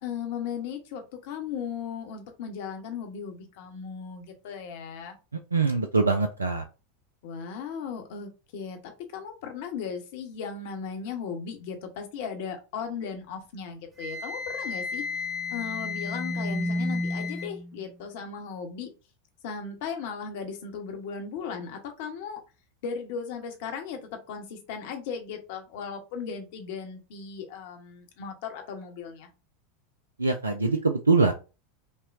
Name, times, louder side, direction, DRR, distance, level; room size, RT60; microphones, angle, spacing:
voice 1, 0.0-5.2 7.2-15.0 15.5-18.9 19.4-22.4 22.8-29.3, left 6 dB, 60° left, 5 dB, 0.9 m, -37 dB
voice 2, 5.5-6.6 30.2-31.3, right 4 dB, 85° right, 6 dB, 0.4 m, -23 dB
Wind instrument woodwind instrument, 14.0-17.5, left 6 dB, 20° right, 1.1 m, -35 dB
sound 1, 15.2-17.8, equal, 35° right, 0.7 m, -32 dB
5.4 x 2.2 x 2.5 m, 0.31 s
figure-of-eight pair, 85°, 0 cm